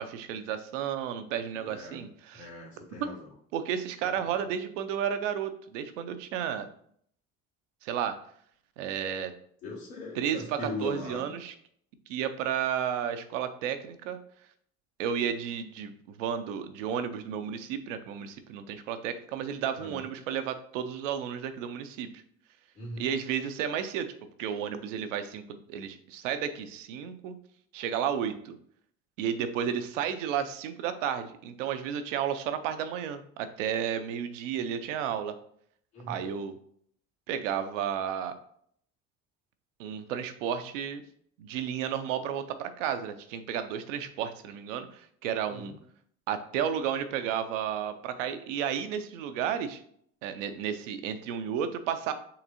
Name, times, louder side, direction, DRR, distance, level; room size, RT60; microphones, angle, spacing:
voice 1, 0.0-2.5 3.0-3.1 3.5-6.7 7.8-8.2 8.8-9.3 10.2-10.4 10.8-11.5 12.1-14.2 15.0-22.1 23.0-24.1 24.4-27.3 27.7-28.5 29.2-35.4 36.1-36.6 37.3-38.4 39.8-41.0 41.4-45.7 46.3-49.8 50.2-52.1, right 8 dB, 75° right, 10 dB, 0.6 m, -32 dB
voice 2, 1.5-2.0 2.3-3.3 4.0-4.4 9.6-11.3 19.8-20.0 22.7-23.1 35.9-36.3 45.5-45.8, left 2 dB, 80° left, -5 dB, 1.8 m, -40 dB
5.7 x 3.3 x 2.6 m, 0.64 s
hypercardioid pair, 50°, 38 cm